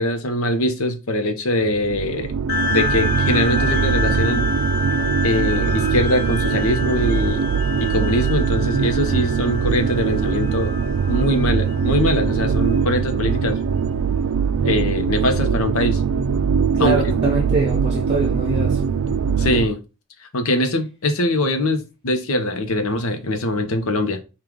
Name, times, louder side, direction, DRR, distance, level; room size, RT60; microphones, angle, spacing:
voice 1, 0.0-2.3 2.7-4.6 5.2-7.4 7.8-10.7 11.1-13.6 14.6-16.0 16.8-17.0 19.4-19.8 20.3-24.2, left 1 dB, 80° left, 0.8 m, -22 dB
sound 1, 1.6-19.7, right 6 dB, 80° right, 0.4 m, -22 dB
sound 2, 2.5-13.4, left 3 dB, 45° left, 1.1 m, -28 dB
voice 2, 16.7-18.8, right 2 dB, 30° right, 0.6 m, -24 dB
4.7 x 2.4 x 3.6 m
head